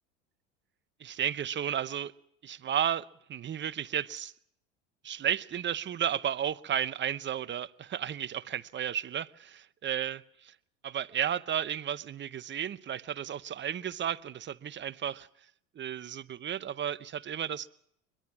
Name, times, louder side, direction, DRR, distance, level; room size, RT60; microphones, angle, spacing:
voice 1, 1.0-2.1 2.4-4.3 5.0-9.5 9.8-10.5 10.8-15.3 15.8-17.7, right 9 dB, 30° right, 0.8 m, -33 dB
23.0 x 22.0 x 6.1 m
hypercardioid pair, 85°, 40 cm